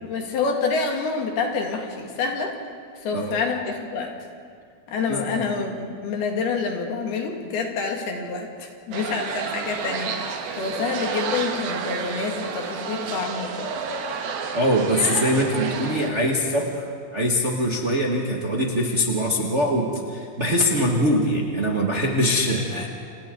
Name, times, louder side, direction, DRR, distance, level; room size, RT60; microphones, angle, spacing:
voice 1, 0.0-2.6 3.0-4.1 4.9-10.1 10.6-13.7, left 4 dB, 90° left, 2 dB, 4.2 m, -27 dB
voice 2, 5.1-5.4 14.5-16.8 17.1-22.9, equal, 30° right, -1 dB, 1.2 m, -23 dB
sound 1, 8.9-16.1, right 6 dB, 75° right, 3.3 m, -30 dB
29.5 x 28.0 x 3.9 m, 2.2 s
omnidirectional pair, 4.3 m